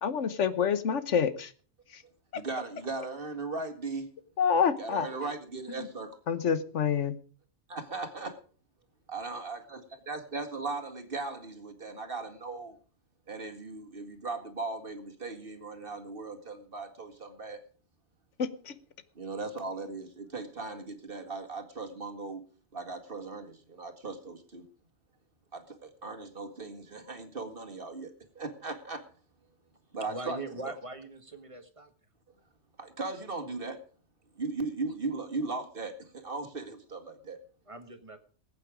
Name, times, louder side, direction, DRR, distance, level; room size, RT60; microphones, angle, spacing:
voice 1, 0.0-1.5 1.9-2.0 2.3-2.4 4.4-5.1 5.8-5.9 6.3-7.1 18.4-18.8, left 7 dB, 90° left, 1.3 m, -27 dB
voice 2, 2.3-4.1 4.8-6.2 7.7-8.4 9.1-9.8 10.1-12.8 13.3-17.6 19.2-22.4 22.7-24.6 25.5-29.0 29.9-30.4 30.6-30.7 32.8-33.8 34.4-37.4, right 3 dB, 50° right, 2.1 m, -38 dB
voice 3, 30.1-31.9 34.9-35.0 37.7-38.2, right 2 dB, 30° right, 1.6 m, -41 dB
20.0 x 8.5 x 5.0 m
omnidirectional pair, 1.2 m